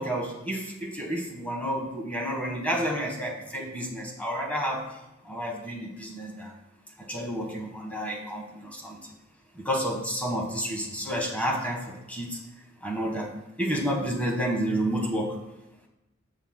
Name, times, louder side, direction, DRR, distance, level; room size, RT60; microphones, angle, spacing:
voice 1, 0.0-4.8 5.2-6.5 7.0-9.0 9.5-12.4 12.8-13.3 13.6-15.4, equal, 5° left, -1 dB, 1.5 m, -30 dB
15.5 x 5.6 x 2.3 m, 0.97 s
head